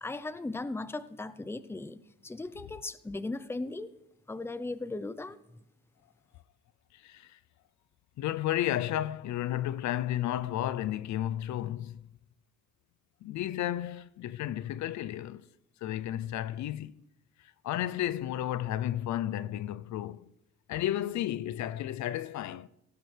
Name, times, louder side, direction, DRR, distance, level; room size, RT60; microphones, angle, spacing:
voice 1, 0.0-3.9 4.3-5.4, left 2 dB, 10° left, 0.6 m, -37 dB
voice 2, 6.9-7.4 8.2-12.0 13.2-15.5 15.8-17.0 17.6-20.3 20.7-22.7, left 12 dB, 70° left, 0.5 m, -32 dB
17.5 x 15.0 x 3.3 m
cardioid pair, 90°, 30 cm